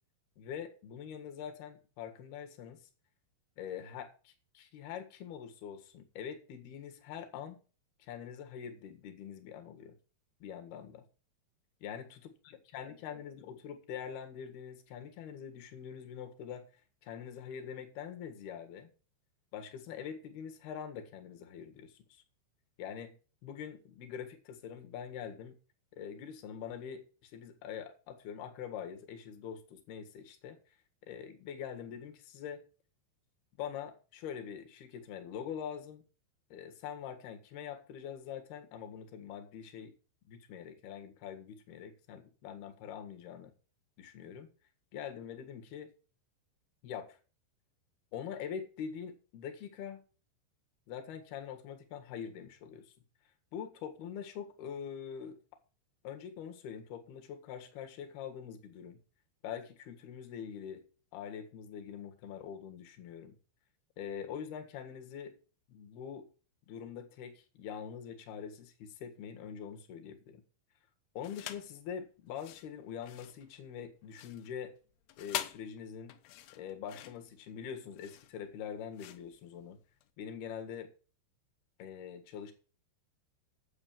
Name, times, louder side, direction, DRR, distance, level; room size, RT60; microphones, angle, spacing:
voice 1, 0.4-2.9 3.6-7.6 8.0-10.0 10.4-11.1 11.8-16.7 17.0-18.9 19.5-22.2 22.8-23.2 23.4-25.6 25.9-30.6 31.0-32.6 33.6-36.0 36.5-39.9 40.3-43.5 44.0-44.5 44.9-45.9 46.8-47.2 48.1-50.0 50.9-52.9 53.5-55.4 56.0-59.0 59.4-60.8 61.1-63.4 64.0-65.4 65.7-66.3 66.7-70.4 71.1-74.7 75.2-76.2 76.5-79.8 80.2-80.9 81.8-82.5, left 8 dB, 60° left, 3.4 m, -44 dB
sound 1, 71.2-71.8 72.3-80.1, left 12 dB, 85° left, 3.3 m, -45 dB
9.7 x 7.5 x 7.5 m
omnidirectional pair, 5.5 m